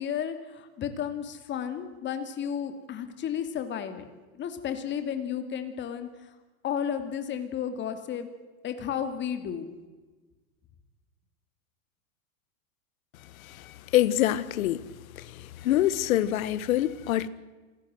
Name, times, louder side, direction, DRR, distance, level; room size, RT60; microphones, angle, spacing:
voice 1, 0.0-4.0 4.3-6.3 6.6-8.3 8.6-9.7, left 8 dB, 25° left, 2.6 m, -33 dB
voice 2, 13.4-14.9 15.1-17.3, left 13 dB, 70° left, 1.5 m, -26 dB
27.0 x 16.0 x 7.9 m
supercardioid pair, 145°, 42 cm